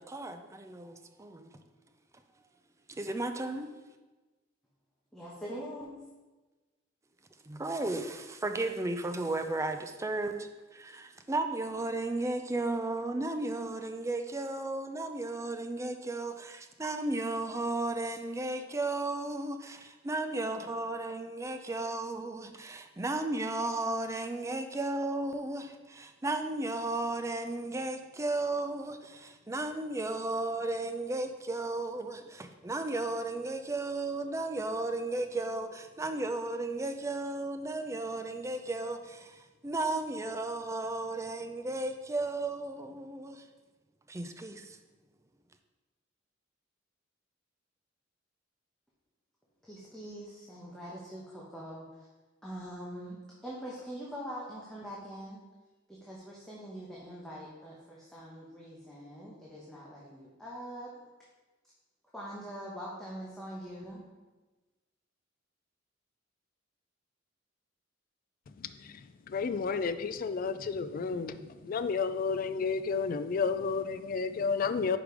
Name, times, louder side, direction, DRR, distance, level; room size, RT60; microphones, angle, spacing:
voice 1, 0.0-1.5 2.9-3.7 7.5-43.4 44.1-44.8, right 2 dB, 15° right, 7 dB, 0.4 m, -34 dB
voice 2, 5.1-6.0 49.6-52.1 52.4-55.4 55.9-60.9 62.1-64.0, equal, 5° left, -6 dB, 0.9 m, -43 dB
voice 3, 68.6-68.9 69.3-75.0, left 5 dB, 45° left, 11 dB, 0.3 m, -31 dB
5.1 x 4.8 x 5.0 m, 1.2 s
head